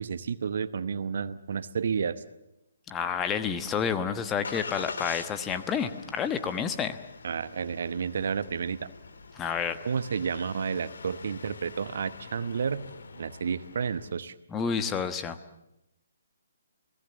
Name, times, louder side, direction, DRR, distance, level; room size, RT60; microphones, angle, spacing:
voice 1, 0.0-2.2 7.2-8.9 9.8-12.9 13.2-14.3, right 6 dB, 50° right, 15 dB, 0.9 m, -31 dB
voice 2, 2.9-7.0 9.3-9.8 14.5-15.4, left 6 dB, 15° left, 9 dB, 1.2 m, -29 dB
Engine starting, 3.4-14.1, left 4 dB, 55° left, 1.8 m, -45 dB
28.5 x 18.0 x 7.3 m, 0.86 s
figure-of-eight pair, 135°, 0 cm